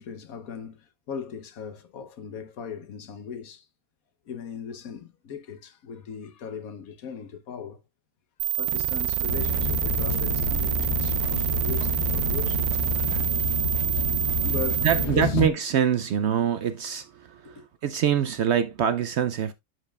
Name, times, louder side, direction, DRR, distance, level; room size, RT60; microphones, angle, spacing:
voice 1, 0.0-3.7 4.3-7.8 8.6-13.1 14.4-15.4 17.4-17.6, left 7 dB, 75° left, 1.4 m, -38 dB
sound 1, 8.4-15.0, right 12 dB, 85° right, 1.2 m, -27 dB
sound 2, 9.3-15.5, left 5 dB, 55° left, 1.0 m, -29 dB
voice 2, 14.8-19.5, right 9 dB, 65° right, 0.7 m, -25 dB
11.0 x 5.3 x 2.3 m
omnidirectional pair, 1.5 m